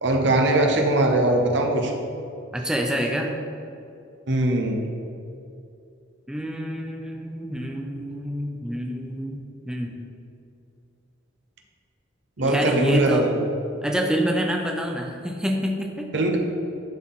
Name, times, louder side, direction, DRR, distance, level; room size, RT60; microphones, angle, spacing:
voice 1, 0.0-1.9 4.3-4.8 12.4-13.3 16.1-16.4, right 2 dB, 65° right, 2 dB, 0.9 m, -21 dB
voice 2, 2.5-3.3 6.3-10.1 12.4-13.3 13.8-16.4, equal, 5° right, 1 dB, 0.5 m, -27 dB
11.5 x 4.3 x 3.7 m, 2.6 s
head